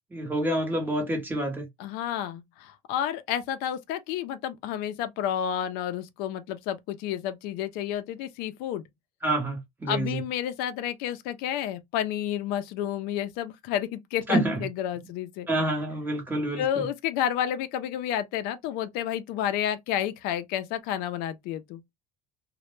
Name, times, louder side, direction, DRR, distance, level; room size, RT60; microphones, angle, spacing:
voice 1, 0.1-1.7 9.2-10.2 14.3-14.6 15.5-16.8, right 1 dB, 10° right, 0.7 m, -27 dB
voice 2, 1.8-8.8 9.9-15.5 16.6-21.8, left 10 dB, 70° left, 0.4 m, -30 dB
2.1 x 2.0 x 3.0 m
cardioid pair, 160°, 16 cm